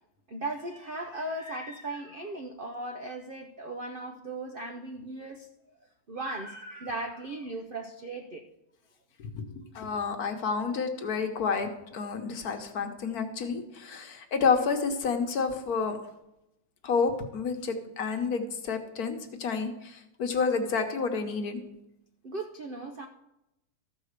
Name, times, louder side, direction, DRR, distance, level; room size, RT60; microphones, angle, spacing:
voice 1, 0.3-5.5 6.1-8.5 22.2-23.1, right 2 dB, 55° right, 4 dB, 0.5 m, -37 dB
voice 2, 9.7-16.0 16.8-21.6, left 5 dB, 60° left, 5 dB, 1.4 m, -29 dB
13.5 x 4.9 x 6.6 m, 0.88 s
omnidirectional pair, 1.9 m